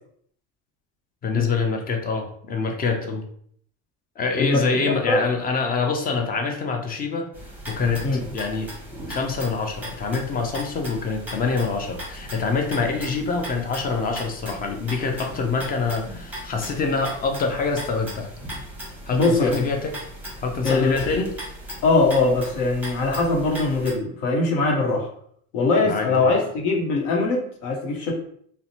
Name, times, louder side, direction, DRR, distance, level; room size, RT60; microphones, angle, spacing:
voice 1, 1.2-3.2 4.2-7.3 7.7-8.7 9.1-18.3 19.1-19.9 20.4-21.3 25.8-26.3, left 4 dB, 25° left, 4 dB, 0.4 m, -25 dB
voice 2, 4.4-4.8 5.1-5.2 8.0-8.2 19.1-19.6 20.6-21.2 21.8-25.1 25.5-28.2, left 3 dB, 75° left, 0 dB, 0.9 m, -21 dB
sound 1, 7.3-23.9, right 1 dB, 5° right, 0.9 m, -37 dB
2.5 x 2.1 x 2.8 m, 0.64 s
supercardioid pair, 100°, 40 cm